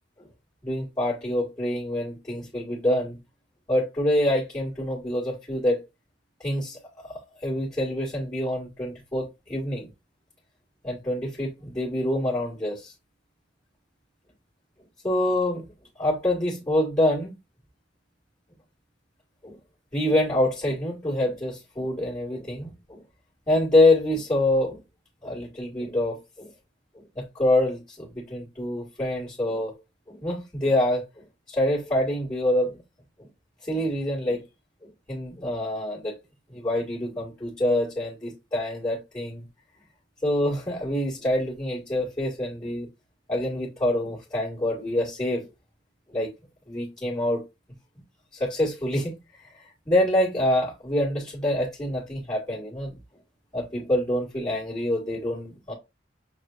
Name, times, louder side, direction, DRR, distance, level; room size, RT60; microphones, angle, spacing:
voice 1, 0.6-3.2 3.7-5.8 6.4-9.9 10.8-12.9 15.0-15.7 16.0-17.3 19.4-19.6 19.9-23.0 23.5-24.8 25.2-26.5 26.9-29.7 30.1-32.8 33.2-33.3 33.6-34.4 34.8-36.2 36.5-39.5 40.2-42.9 43.3-45.5 46.1-46.3 46.7-47.4 48.3-49.2 49.4-53.0 53.5-55.7, left 1 dB, 20° left, 1.6 m, -26 dB
6.1 x 3.3 x 2.4 m
head